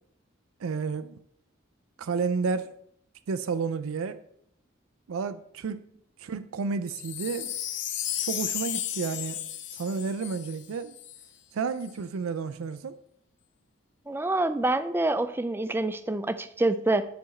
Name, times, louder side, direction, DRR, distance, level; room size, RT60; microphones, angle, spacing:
voice 1, 0.6-1.2 2.0-2.7 3.3-4.2 5.1-5.8 6.2-7.5 8.3-9.4 9.7-10.9 11.5-13.0, right 5 dB, 90° right, 13 dB, 0.4 m, -31 dB
Wind chime, 6.9-11.3 11.8-11.9, left 11 dB, 60° left, 0.8 m, -34 dB
voice 2, 14.1-17.0, right 2 dB, 10° right, 12 dB, 0.3 m, -26 dB
10.5 x 4.6 x 4.3 m, 0.70 s
head